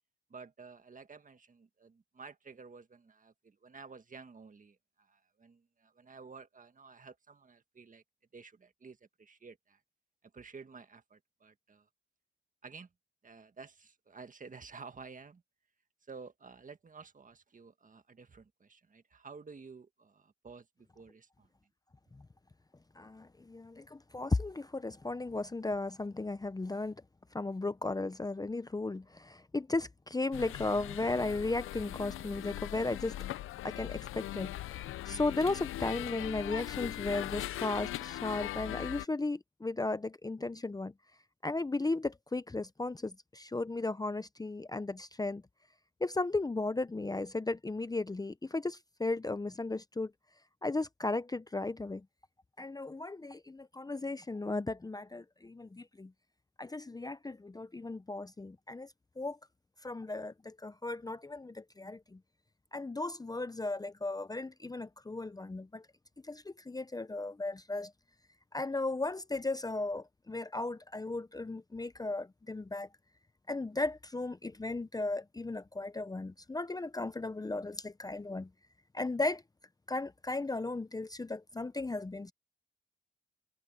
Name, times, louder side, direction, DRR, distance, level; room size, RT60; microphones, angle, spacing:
voice 1, 0.3-8.0 8.3-9.8 10.3-11.9 12.6-12.9 13.2-15.4 16.1-21.5, right 4 dB, 40° right, 1.7 m, -52 dB
voice 2, 23.0-27.0 27.3-33.2 33.6-40.9 41.4-45.4 46.0-50.1 50.6-52.0 52.6-56.1 56.6-59.4 59.8-62.2 62.7-65.8 66.3-67.9 68.5-72.9 73.5-78.5 78.9-79.4 79.9-82.3, left 2 dB, 20° left, 0.7 m, -35 dB
sound 1, 30.3-39.1, left 14 dB, 85° left, 0.5 m, -40 dB
cardioid pair, 65°, 21 cm